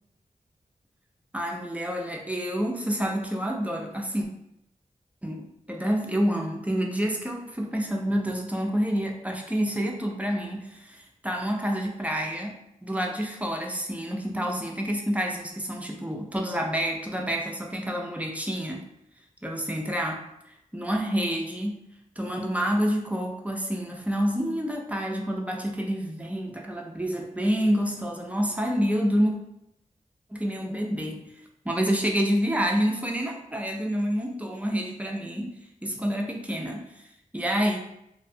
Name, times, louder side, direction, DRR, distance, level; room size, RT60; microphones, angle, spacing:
voice 1, 1.3-4.3 5.2-18.9 19.4-20.2 20.7-21.8 22.2-29.3 30.3-31.2 31.6-35.6 35.8-36.9 37.3-37.8, equal, 10° right, 1 dB, 0.4 m, -28 dB
2.6 x 2.1 x 2.6 m, 0.81 s
wide cardioid pair, 85°, 14 cm